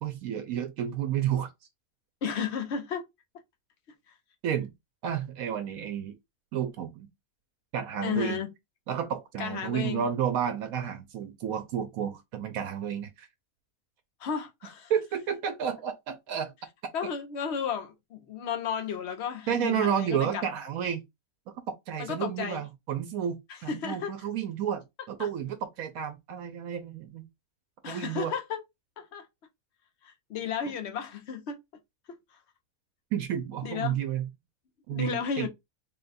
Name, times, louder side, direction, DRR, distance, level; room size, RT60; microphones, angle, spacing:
voice 1, 0.0-1.5 4.4-4.7 5.0-6.1 6.5-7.1 7.7-8.4 8.9-13.3 14.9-16.5 19.5-21.0 21.9-27.3 27.9-28.3 33.1-34.3 34.9-35.5, right 9 dB, 85° right, 1.1 m, -31 dB
voice 2, 2.2-3.1 8.0-8.5 9.4-10.1 14.2-14.9 16.9-20.4 22.0-22.6 23.7-24.1 25.2-25.3 27.8-28.6 29.0-29.3 30.0-31.6 32.1-32.2 33.6-34.0 34.9-35.5, left 7 dB, 55° left, 0.9 m, -33 dB
4.0 x 2.2 x 4.0 m
omnidirectional pair, 1.5 m